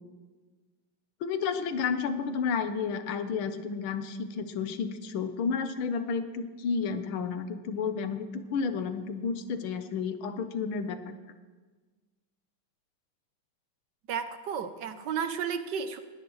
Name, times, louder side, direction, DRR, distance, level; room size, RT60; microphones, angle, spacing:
voice 1, 1.2-11.2, left 5 dB, 75° left, 9 dB, 1.7 m, -31 dB
voice 2, 14.1-16.0, right 7 dB, 65° right, 9 dB, 1.3 m, -33 dB
20.0 x 16.5 x 3.2 m, 1.4 s
omnidirectional pair, 2.3 m